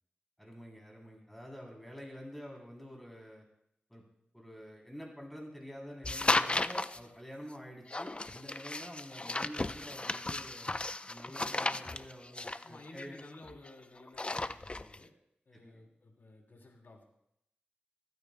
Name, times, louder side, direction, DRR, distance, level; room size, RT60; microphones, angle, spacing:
voice 1, 0.4-3.4 3.9-4.0 4.3-10.7 11.1-13.2 15.5-15.9, equal, 5° left, -1 dB, 3.3 m, -48 dB
sound 1, 6.0-7.0 7.9-13.7 14.0-15.0, left 2 dB, 30° left, 0.5 m, -34 dB
voice 2, 12.6-15.1 15.5-17.0, left 2 dB, 70° left, 1 dB, 3.0 m, -54 dB
26.0 x 9.4 x 2.2 m, 0.79 s
cardioid pair, 45°, 4 cm